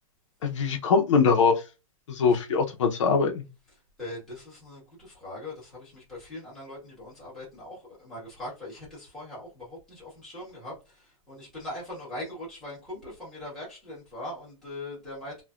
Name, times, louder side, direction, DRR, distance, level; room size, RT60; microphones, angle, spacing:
voice 1, 0.4-1.6 2.1-3.4, left 5 dB, 60° left, 0.6 m, -22 dB
voice 2, 4.0-15.4, left 1 dB, ahead, 1.2 m, -41 dB
3.1 x 2.1 x 2.4 m
hypercardioid pair, 175°, 18 cm